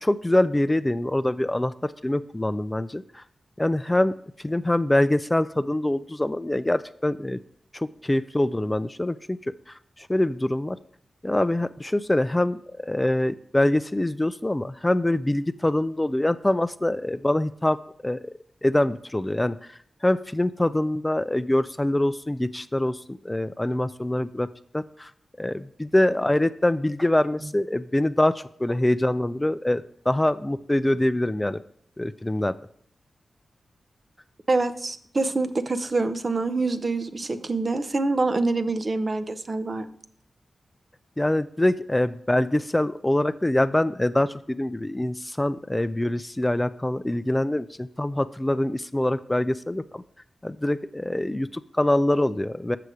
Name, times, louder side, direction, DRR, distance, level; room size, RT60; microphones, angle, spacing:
voice 1, 0.0-3.2 3.6-7.4 7.7-9.4 9.7-10.8 11.2-24.5 24.7-25.1 25.4-31.6 32.0-32.6 41.2-50.0 50.4-52.8, left 1 dB, 20° left, 13 dB, 0.4 m, -24 dB
voice 2, 34.5-39.9, right 3 dB, 45° right, 10 dB, 0.6 m, -25 dB
6.8 x 6.4 x 4.9 m, 0.64 s
cardioid pair, 50°, 0 cm